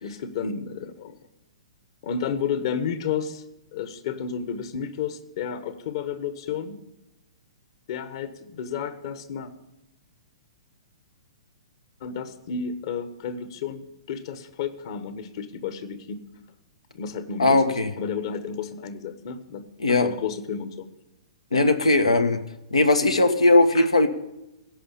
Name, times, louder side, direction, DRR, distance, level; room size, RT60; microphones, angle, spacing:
voice 1, 0.0-1.2 2.0-3.4 3.7-6.8 7.9-9.5 12.0-16.2 16.9-20.8 21.5-21.7 23.7-23.9, left 6 dB, 55° left, 12 dB, 1.4 m, -32 dB
voice 2, 17.4-17.9 19.8-20.1 21.5-22.4 22.7-24.1, left 2 dB, 90° left, 7 dB, 1.3 m, -19 dB
16.5 x 5.7 x 8.4 m, 0.93 s
hypercardioid pair, 120°, 3 cm